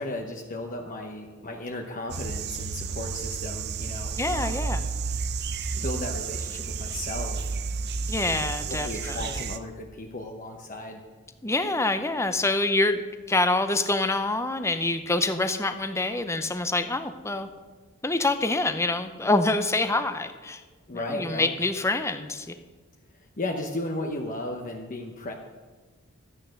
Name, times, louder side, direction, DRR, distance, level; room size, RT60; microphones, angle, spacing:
voice 1, 0.0-4.5 5.7-7.5 8.2-11.0 20.9-21.5 23.1-25.3, left 1 dB, 40° left, 2 dB, 0.9 m, -35 dB
sound 1, 2.1-9.6, right 5 dB, 50° right, 0.6 m, -31 dB
voice 2, 4.2-4.8 8.1-9.4 11.4-17.5 18.0-20.6 21.1-22.5, left 2 dB, 15° left, 9 dB, 0.6 m, -26 dB
13.0 x 8.9 x 6.4 m, 1.4 s
head